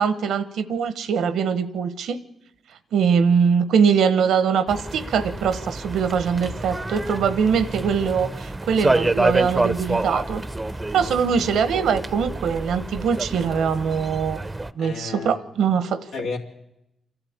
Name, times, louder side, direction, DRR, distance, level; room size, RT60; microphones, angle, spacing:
voice 1, 0.0-2.2 2.9-10.4 10.9-14.4 14.8-16.0, right 6 dB, 85° right, 1.0 m, -22 dB
sound 1, 4.7-14.7, right 2 dB, 20° right, 0.7 m, -28 dB
voice 2, 11.0-11.5 14.8-15.4 16.1-16.4, left 4 dB, 90° left, 2.4 m, -33 dB
27.5 x 12.0 x 8.7 m
cardioid pair, 70°, 0 cm